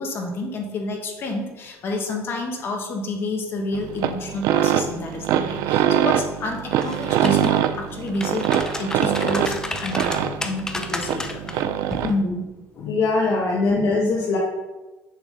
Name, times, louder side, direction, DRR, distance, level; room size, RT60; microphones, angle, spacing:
voice 1, 0.0-11.8 12.7-13.0, left 2 dB, 40° left, 2 dB, 1.3 m, -30 dB
sound 1, 3.7-12.2, right 10 dB, 75° right, 0.5 m, -23 dB
sound 2, 6.7-7.7 8.1-11.5 11.9-12.1, left 2 dB, 10° left, 0.6 m, -32 dB
voice 2, 12.0-12.5 12.8-14.4, left 3 dB, 60° left, -4 dB, 1.5 m, -21 dB
6.9 x 6.2 x 5.1 m, 1.1 s
cardioid pair, 155°, 6 cm